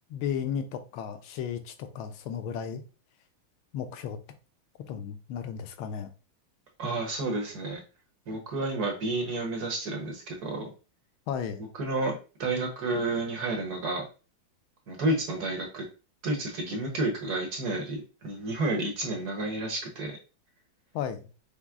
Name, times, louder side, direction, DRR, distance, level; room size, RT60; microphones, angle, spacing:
voice 1, 0.1-2.8 3.7-4.2 4.9-6.1 11.3-11.7 20.9-21.3, left 8 dB, 80° left, 1.4 m, -34 dB
voice 2, 6.8-7.8 8.3-10.7 11.8-14.0 14.9-15.9 16.2-20.2, right 2 dB, 55° right, 1.4 m, -30 dB
5.9 x 2.0 x 3.6 m
omnidirectional pair, 2.2 m